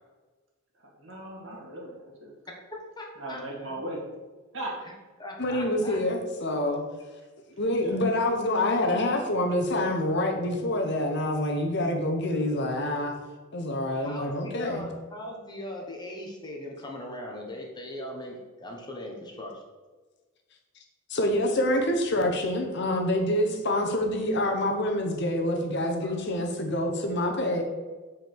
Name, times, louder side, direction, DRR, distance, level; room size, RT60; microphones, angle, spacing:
voice 1, 0.8-2.3 3.2-4.0 4.5-4.8 7.7-8.0, right 1 dB, 60° right, -2 dB, 2.0 m, -38 dB
voice 2, 3.0-3.7 5.2-6.0 14.0-19.6 26.0-26.2, left 1 dB, 20° left, 0 dB, 1.0 m, -39 dB
voice 3, 5.4-6.8 7.6-13.1 13.5-14.9 21.1-27.6, left 1 dB, 55° left, 3 dB, 1.0 m, -26 dB
7.4 x 4.9 x 4.6 m, 1.3 s
head